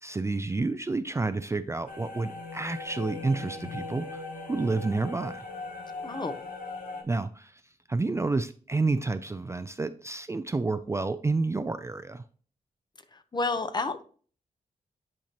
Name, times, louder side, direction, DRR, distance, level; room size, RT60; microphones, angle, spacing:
voice 1, 0.0-5.4 7.0-7.6 7.9-12.2, right 3 dB, 20° right, 0.4 m, -30 dB
sound 1, 1.9-7.0, left 3 dB, 65° left, 1.7 m, -39 dB
voice 2, 6.0-6.4 13.1-14.0, left 3 dB, 30° left, 0.8 m, -30 dB
10.0 x 4.5 x 2.9 m
cardioid pair, 95°, 15 cm